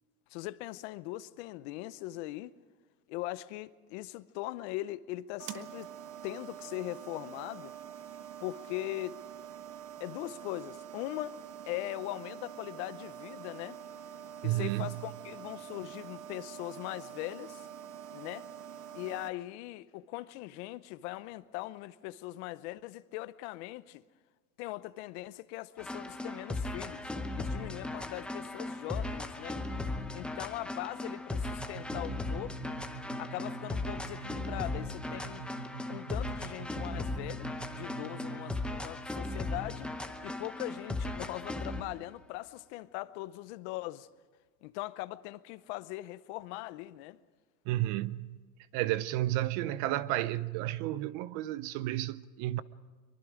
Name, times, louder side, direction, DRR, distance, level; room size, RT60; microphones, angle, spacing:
voice 1, 0.3-2.5 3.1-5.9 6.2-7.7 8.4-9.2 10.0-13.8 14.4-17.7 18.1-18.5 18.9-24.0 24.6-27.1 27.3-29.6 30.1-32.7 33.2-35.4 35.9-39.9 40.2-44.1 44.6-47.2, left 17 dB, 45° left, 0.8 m, -40 dB
sound 1, 5.4-19.3, right 9 dB, 85° right, 1.6 m, -46 dB
voice 2, 14.4-14.9 47.7-48.3 48.7-52.6, right 15 dB, 40° right, 0.6 m, -32 dB
sound 2, 25.8-41.9, left 2 dB, ahead, 0.8 m, -37 dB
sound 3, 31.4-39.0, right 6 dB, 65° right, 2.3 m, -46 dB
24.0 x 23.5 x 5.0 m
supercardioid pair, 150°, 46 cm